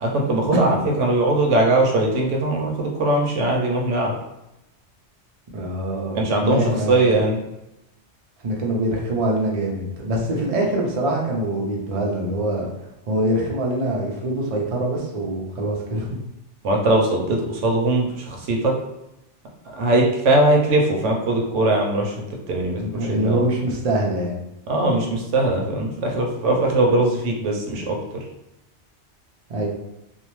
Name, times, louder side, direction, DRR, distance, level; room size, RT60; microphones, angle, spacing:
voice 1, 0.0-4.1 6.1-7.4 16.6-18.7 19.8-22.1 22.5-23.4 24.7-28.0, right 2 dB, 85° right, 0 dB, 1.0 m, -20 dB
voice 2, 5.5-7.1 8.4-12.7 13.1-16.1 22.8-24.4 29.5-29.7, right 1 dB, 45° right, -2 dB, 0.5 m, -24 dB
2.6 x 2.0 x 3.0 m, 0.90 s
omnidirectional pair, 1.2 m